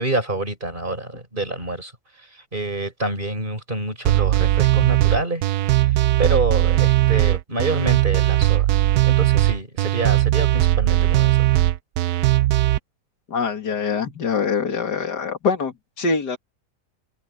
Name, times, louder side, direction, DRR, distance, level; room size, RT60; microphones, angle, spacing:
voice 1, 0.0-1.9 2.2-5.5 5.7-8.7 9.0-11.5, right 2 dB, 30° right, 5.4 m, -27 dB
sound 1, 4.1-12.8, right 15 dB, 70° right, 1.0 m, -18 dB
voice 2, 13.3-16.4, left 5 dB, 75° left, 2.8 m, -24 dB
open air
omnidirectional pair, 1.8 m